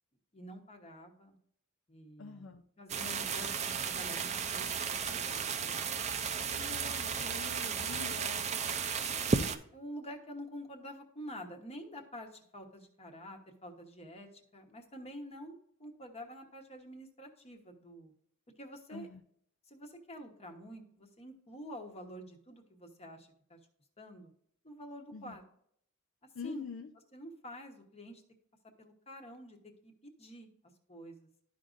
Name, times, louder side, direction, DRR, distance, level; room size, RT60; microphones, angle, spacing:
voice 1, 0.3-1.4 1.9-2.5 2.8-5.9 8.9-18.1 18.6-19.1 19.7-23.6 24.0-24.3 24.6-25.4 26.4-26.7 27.1-28.2 28.8-30.5 30.9-31.3, equal, 30° left, 3 dB, 1.1 m, -48 dB
voice 2, 2.2-2.6 6.5-8.8 18.9-19.2 25.1-25.4 26.3-26.9, left 6 dB, 65° left, 5 dB, 0.5 m, -46 dB
sound 1, 2.9-9.6, right 6 dB, 30° right, 0.5 m, -34 dB
12.0 x 5.0 x 2.5 m, 0.68 s
head